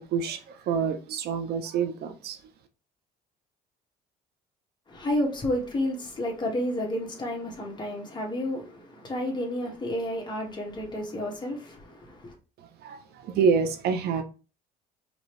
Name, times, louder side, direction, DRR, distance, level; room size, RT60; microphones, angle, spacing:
voice 1, 0.0-2.4 12.8-14.2, right 6 dB, 70° right, 0.7 m, -27 dB
voice 2, 4.9-12.3, left 1 dB, 25° left, 1.5 m, -31 dB
5.1 x 2.9 x 3.2 m
cardioid pair, 110°, 17 cm